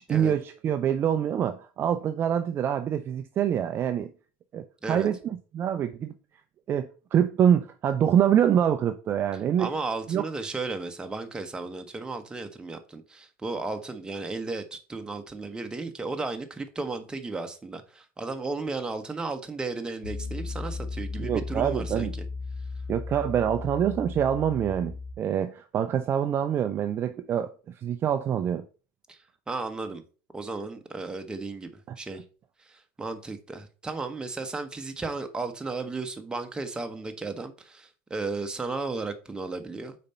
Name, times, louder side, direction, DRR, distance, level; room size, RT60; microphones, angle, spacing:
voice 1, 0.1-4.1 4.5-6.1 6.7-9.7 10.1-10.2 21.2-22.1 22.9-27.5 27.8-28.6, right 9 dB, 35° right, 0.5 m, -25 dB
voice 2, 9.6-22.3 29.1-29.2 29.5-30.0 30.3-32.2 32.6-40.0, right 3 dB, 10° right, 1.0 m, -34 dB
Piano, 20.0-25.1, left 4 dB, 75° left, 1.7 m, -35 dB
5.1 x 4.3 x 5.5 m
supercardioid pair, 110°, 7 cm